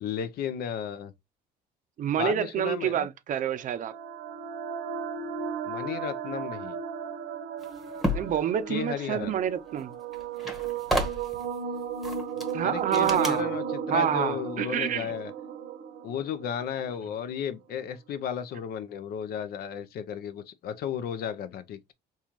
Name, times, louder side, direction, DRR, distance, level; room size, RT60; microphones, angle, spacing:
voice 1, 0.0-1.1 2.2-3.1 5.6-6.8 8.7-9.3 12.6-15.3 16.0-21.9, left 8 dB, 65° left, 0.6 m, -34 dB
voice 2, 2.0-3.9 8.1-9.9 12.5-13.5 13.9-15.1, right 9 dB, 50° right, 0.5 m, -28 dB
sound 1, 3.5-17.2, right 7 dB, 85° right, 0.9 m, -35 dB
sound 2, 7.6-8.4 9.8-9.9 10.1-11.5 12.0-12.5 12.9-13.4, equal, ahead, 1.0 m, -31 dB
4.2 x 2.4 x 2.9 m
cardioid pair, 110°, 17 cm